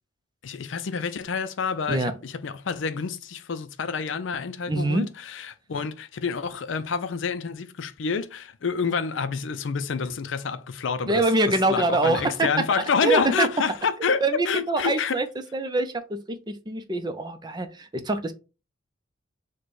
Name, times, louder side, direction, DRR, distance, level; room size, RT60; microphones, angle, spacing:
voice 1, 0.4-15.2, left 5 dB, 70° left, 0.5 m, -28 dB
voice 2, 4.7-5.1 11.1-12.5 13.0-13.5 14.2-15.3 15.5-18.3, right 2 dB, 20° right, 0.5 m, -24 dB
4.2 x 2.2 x 4.6 m
head